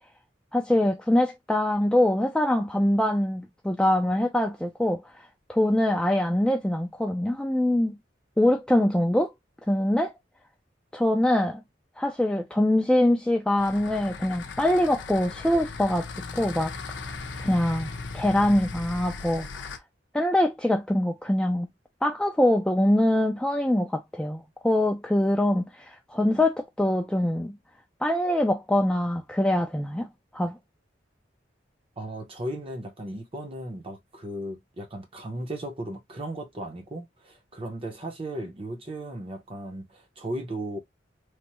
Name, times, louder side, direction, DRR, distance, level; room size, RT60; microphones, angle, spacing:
voice 1, 0.5-5.0 5.5-8.0 8.4-9.3 9.7-10.1 10.9-11.6 12.0-16.1 16.4-17.1 17.4-19.8 20.1-21.7 22.0-27.5 28.0-30.1 30.3-30.6, left 1 dB, 5° left, 0.3 m, -24 dB
sound 1, 13.6-19.8, left 4 dB, 80° left, 0.6 m, -38 dB
voice 2, 32.0-40.8, right 1 dB, 30° right, 0.7 m, -36 dB
3.2 x 2.0 x 2.8 m
head